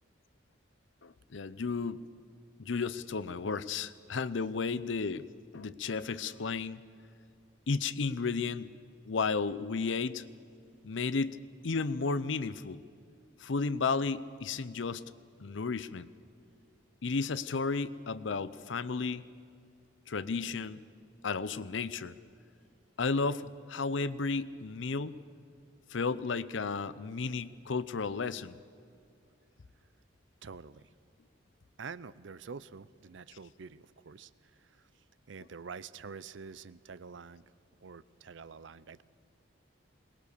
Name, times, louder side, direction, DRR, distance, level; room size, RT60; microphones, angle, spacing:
voice 1, 1.0-2.1 2.6-5.3 5.5-6.8 7.7-8.7 9.0-10.2 10.8-11.4 11.6-12.8 13.4-15.0 15.4-16.1 17.0-19.2 20.1-20.8 21.2-22.1 23.0-25.2 25.9-28.6, left 4 dB, 75° left, 16 dB, 0.6 m, -33 dB
voice 2, 30.4-30.9 31.8-34.9 35.3-37.4 37.8-39.0, right 5 dB, 75° right, 18 dB, 0.6 m, -47 dB
22.0 x 19.5 x 6.9 m, 2.4 s
head